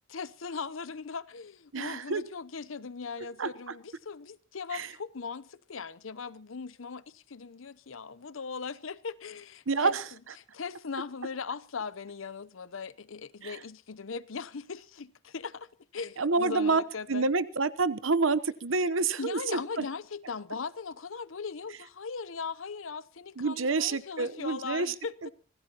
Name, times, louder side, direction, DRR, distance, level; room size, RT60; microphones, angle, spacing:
voice 1, 0.1-10.0 10.5-17.3 19.2-25.1, left 5 dB, 80° left, 0.8 m, -39 dB
voice 2, 1.7-2.2 3.4-3.7 4.7-4.9 9.7-10.0 13.4-13.6 16.2-16.8 17.1-19.8 23.4-24.9 25.2-25.3, right 4 dB, 80° right, 0.9 m, -28 dB
25.5 x 17.5 x 3.0 m
head